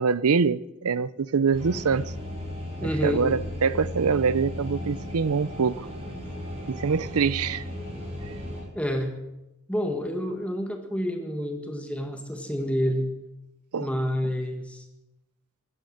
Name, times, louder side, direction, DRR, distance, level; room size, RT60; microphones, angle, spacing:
voice 1, 0.0-2.1 3.0-5.9 6.7-7.6 8.3-8.4 13.7-13.9, right 5 dB, 75° right, 0.6 m, -24 dB
sound 1, 1.5-8.6, left 1 dB, 25° right, 6.7 m, -35 dB
voice 2, 2.8-3.3 8.7-9.1 9.7-13.1 13.8-14.8, equal, 5° left, 1.7 m, -28 dB
16.0 x 13.5 x 6.6 m
head